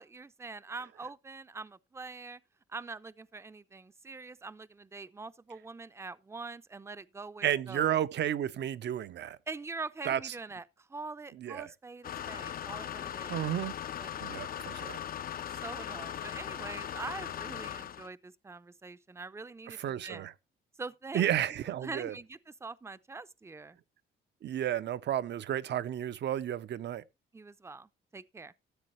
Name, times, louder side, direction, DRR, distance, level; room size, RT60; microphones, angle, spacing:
voice 1, 0.0-2.4 2.7-8.0 9.5-13.4 14.0-14.1 15.6-20.3 20.8-21.3 21.7-23.8 27.3-28.5, right 3 dB, 15° right, 0.6 m, -44 dB
voice 2, 7.4-9.4 10.1-10.2 11.4-11.7 13.3-13.8 14.2-15.0 19.7-20.3 21.1-22.1 24.4-27.0, right 11 dB, 60° right, 0.7 m, -32 dB
sound 1, 12.0-18.1, left 10 dB, 50° left, 0.6 m, -39 dB
14.0 x 7.5 x 3.1 m
cardioid pair, 90°, 20 cm